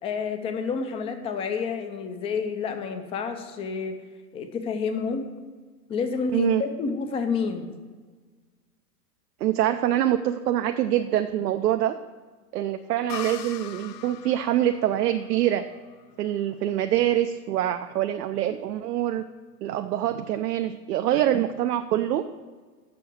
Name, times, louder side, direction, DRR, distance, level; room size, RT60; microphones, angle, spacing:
voice 1, 0.0-4.0 4.3-5.3 5.9-7.8, left 5 dB, 15° left, 7 dB, 0.4 m, -29 dB
voice 2, 9.4-11.9 12.5-15.6 16.2-19.2 19.6-22.2, right 12 dB, 70° right, 8 dB, 0.6 m, -25 dB
sound 1, 13.1-16.6, left 11 dB, 90° left, 0.5 m, -41 dB
6.9 x 6.0 x 7.6 m, 1.4 s
hypercardioid pair, 110°, 48 cm